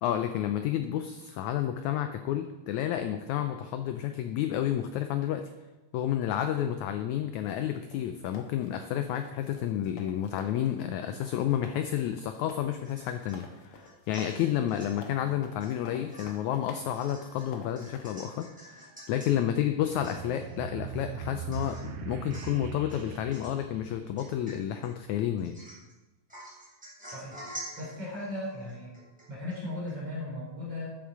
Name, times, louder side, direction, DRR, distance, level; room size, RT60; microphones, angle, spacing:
voice 1, 0.0-5.4 5.9-25.6, left 11 dB, 85° left, 8 dB, 1.7 m, -30 dB
sound 1, 7.5-18.0, left 3 dB, 60° left, 1.4 m, -50 dB
Domestic sounds home sounds / Chink clink / Drip, 12.8-13.4 13.8-15.0 15.6-15.8 16.1-19.3 19.7-19.8 20.0-20.5 21.0-21.1 21.5-21.9 22.3-22.6 22.9-23.6 24.2-24.9 25.4-25.9 26.3-29.6 29.9-30.0, right 1 dB, ahead, 3.9 m, -47 dB
sound 2, 19.8-24.7, right 8 dB, 75° right, 1.8 m, -40 dB
voice 2, 27.8-28.9 29.3-30.9, left 1 dB, 45° right, -4 dB, 4.4 m, -37 dB
12.5 x 7.2 x 4.7 m, 1.1 s
omnidirectional pair, 3.9 m